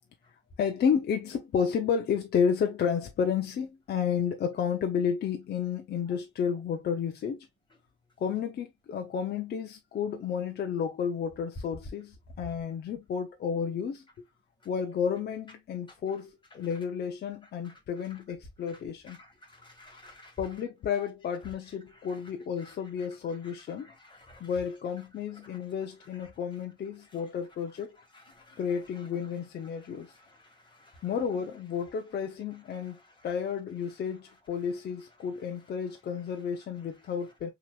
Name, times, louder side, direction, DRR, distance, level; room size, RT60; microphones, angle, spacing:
voice 1, 0.6-7.5 8.2-14.2 14.7-19.2 20.4-23.9 24.4-28.0 28.6-30.2 31.0-37.5, left 7 dB, 55° left, 0.6 m, -31 dB
voice 2, 19.1-20.3 21.4-21.5 22.1-22.2 22.6-24.5 25.4-25.6 26.2-26.3 27.1-27.2 28.1-29.1 30.8-30.9 32.8-32.9, left 1 dB, 25° left, 2.1 m, -54 dB
5.7 x 3.0 x 2.3 m
cardioid pair, 90°, 20 cm